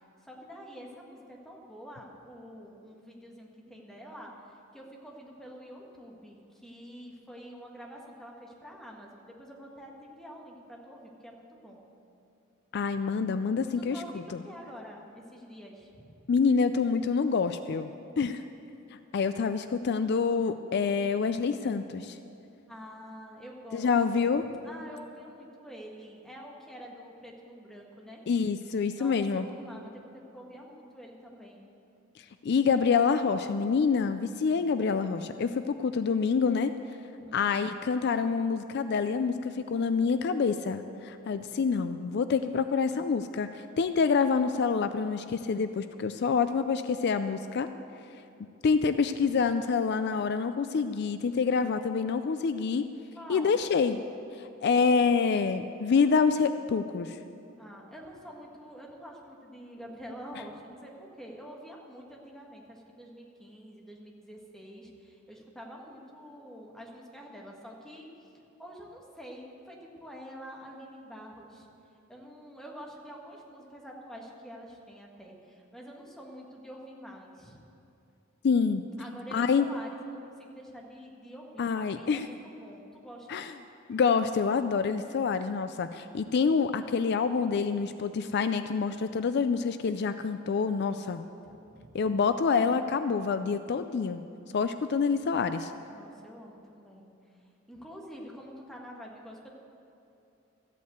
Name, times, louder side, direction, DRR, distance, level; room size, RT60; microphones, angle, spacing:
voice 1, 0.2-11.8 13.7-16.2 22.7-28.2 28.9-31.7 37.1-37.4 41.3-41.4 48.7-48.9 53.1-53.6 57.6-68.3 68.6-71.7 72.1-77.6 79.0-83.4 91.2-92.0 95.9-99.5, equal, 5° left, -1 dB, 1.6 m, -47 dB
voice 2, 12.7-14.0 16.3-17.9 18.2-18.4 19.1-22.2 23.7-24.4 28.3-29.5 32.2-36.7 37.3-47.7 48.6-52.9 53.3-54.0 54.3-57.2 78.4-78.8 79.3-79.7 81.6-82.2 83.3-83.5 83.9-91.3 91.9-94.2 94.5-95.7, left 5 dB, 55° left, 10 dB, 0.4 m, -27 dB
13.5 x 8.4 x 7.9 m, 2.7 s
head